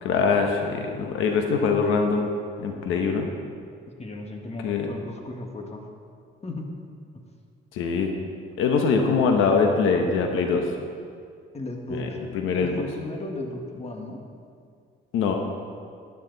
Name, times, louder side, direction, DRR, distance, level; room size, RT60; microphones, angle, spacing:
voice 1, 0.0-2.3 2.6-3.3 4.6-4.9 7.7-8.1 8.6-10.7 11.9-12.8 15.1-15.4, left 5 dB, 90° left, 3 dB, 1.1 m, -23 dB
voice 2, 4.0-5.8 6.4-6.7 11.5-14.2, left 2 dB, 30° left, 2 dB, 1.7 m, -35 dB
12.0 x 12.0 x 4.0 m, 2.2 s
cardioid pair, 90°, 20 cm